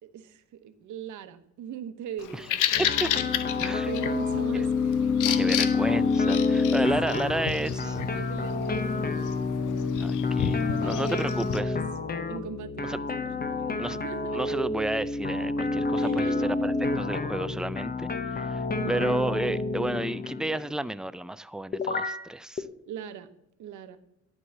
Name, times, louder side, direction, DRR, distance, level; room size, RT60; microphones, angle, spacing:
voice 1, 0.0-5.8 7.0-10.0 10.6-11.8 12.3-14.6 16.0-16.6 18.8-19.2 22.8-23.3 23.6-24.0, right 8 dB, 75° right, 10 dB, 1.1 m, -41 dB
Bird vocalization bird call bird song, 2.2-11.6, left 11 dB, 85° left, 0.8 m, -33 dB
sound 1, 2.8-20.6 21.7-22.2 22.6-22.7, left 4 dB, 30° left, 1.0 m, -28 dB
voice 2, 2.9-3.2 3.6-3.9 4.5-4.6 5.3-8.0 10.0-11.8 12.8-13.0 13.8-14.0 14.3-22.7, right 1 dB, ahead, 15 dB, 0.4 m, -32 dB
11.0 x 4.8 x 7.3 m, 0.79 s
cardioid pair, 90°, 30 cm